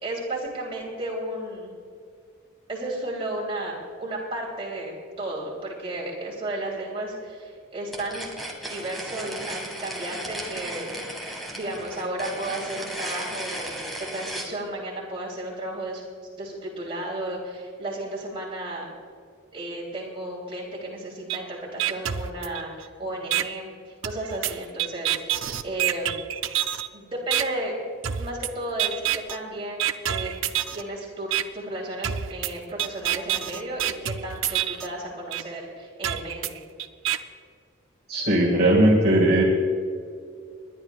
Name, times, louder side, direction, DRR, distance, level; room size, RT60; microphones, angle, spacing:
voice 1, 0.0-1.7 2.7-8.3 8.7-11.2 11.5-16.0 16.4-18.9 19.5-26.2 26.9-27.7 28.2-30.3 30.7-36.6, right 1 dB, 25° right, -4 dB, 3.2 m, -33 dB
sound 1, 7.9-14.5, right 1 dB, ahead, 1.7 m, -35 dB
sound 2, 21.3-21.4 21.8-22.8 23.3-23.4 24.0-26.9 27.3-27.4 28.0-28.5 28.8-29.4 29.8-30.8 31.3-31.4 32.0-34.9 35.3-35.4 36.0-37.2, right 11 dB, 70° right, 0.6 m, -27 dB
voice 2, 38.1-39.4, right 1 dB, 50° right, -3 dB, 2.0 m, -18 dB
29.5 x 11.0 x 2.4 m, 2.2 s
head